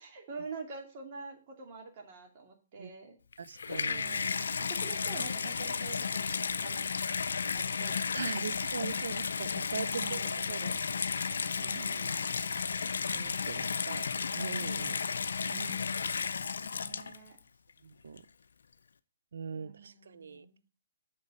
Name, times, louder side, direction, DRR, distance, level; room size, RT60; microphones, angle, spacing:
voice 1, 0.0-3.2 3.8-6.9 7.5-9.0 9.9-10.6 11.6-12.3 14.8-15.3 16.6-17.4 19.5-20.6, right 4 dB, 40° right, 2.5 m, -47 dB
Water tap faucet / Bathtub (filling or washing), 3.3-17.4 18.2-18.3, left 5 dB, 75° left, 0.5 m, -33 dB
voice 2, 3.4-4.1 8.1-10.2 10.5-10.8 13.1-15.0 15.5-15.8 17.8-18.2 19.3-20.5, right 6 dB, 75° right, 0.6 m, -41 dB
6.5 x 5.3 x 6.5 m
hypercardioid pair, 140°, 0 cm